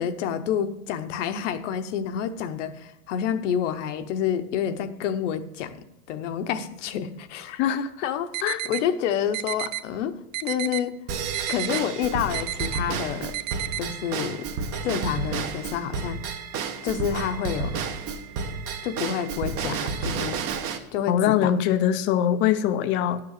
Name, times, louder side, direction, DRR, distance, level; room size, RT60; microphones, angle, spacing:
voice 1, 0.0-5.8 6.1-7.6 8.0-8.3 8.6-11.0 11.5-13.4 13.8-14.5 14.8-16.2 16.8-17.8 18.8-20.4 20.9-21.5, left 8 dB, 55° left, 10 dB, 1.0 m, -28 dB
voice 2, 7.6-7.9 8.4-8.6 21.1-23.2, left 10 dB, 25° left, 11 dB, 0.5 m, -22 dB
sound 1, 8.3-8.8 9.3-9.8 10.3-10.8 11.3-11.8 12.3-12.8 13.3-13.8, right 16 dB, 65° right, 0.7 m, -31 dB
Drum kit / Drum / Bell, 11.1-20.8, right 5 dB, 30° right, 0.9 m, -31 dB
11.0 x 6.8 x 6.5 m, 0.89 s
supercardioid pair, 145°, 44 cm